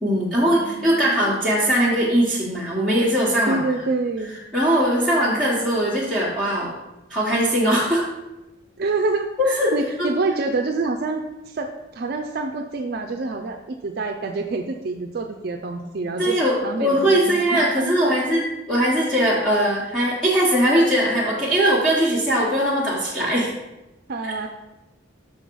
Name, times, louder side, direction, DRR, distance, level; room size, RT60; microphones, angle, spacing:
voice 1, 0.0-3.6 4.5-6.7 7.1-8.0 9.4-9.7 10.0-10.1 16.2-23.5 24.2-24.3, equal, 5° left, -9 dB, 1.2 m, -20 dB
voice 2, 0.6-1.1 3.5-4.3 8.8-18.1 24.1-24.5, right 3 dB, 55° right, 4 dB, 0.4 m, -27 dB
6.0 x 5.7 x 4.6 m, 1.0 s
head